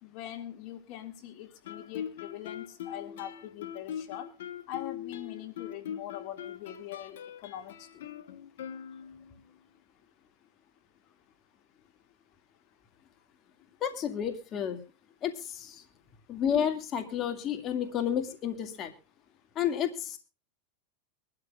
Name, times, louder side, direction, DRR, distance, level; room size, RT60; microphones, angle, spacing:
voice 1, 0.0-4.3 4.7-7.9, left 12 dB, 55° left, 7 dB, 2.0 m, -42 dB
Guitar, 1.6-9.4, left 9 dB, 80° left, 1.2 m, -41 dB
voice 2, 13.8-14.8 15.2-15.8 16.3-18.9 19.6-20.2, left 9 dB, 35° left, 6 dB, 2.1 m, -31 dB
23.0 x 12.5 x 2.4 m, 0.32 s
supercardioid pair, 130°, 0 cm